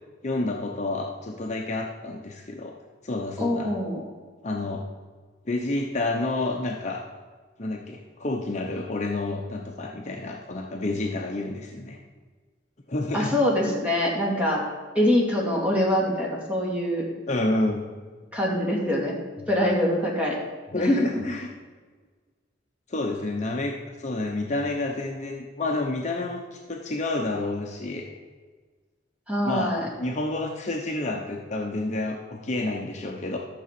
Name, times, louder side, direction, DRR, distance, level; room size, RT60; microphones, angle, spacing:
voice 1, 0.2-2.8 3.0-3.7 4.4-4.8 5.4-7.0 7.6-12.0 12.9-13.4 17.3-17.9 20.7-21.5 22.9-28.1 29.4-33.4, left 2 dB, 40° left, 1 dB, 0.9 m, -29 dB
voice 2, 3.4-4.0 13.1-14.6 14.9-17.0 18.3-19.2 19.5-20.4 20.8-21.0 29.3-29.9, left 1 dB, 5° right, -4 dB, 2.5 m, -24 dB
12.5 x 6.9 x 5.9 m, 1.4 s
head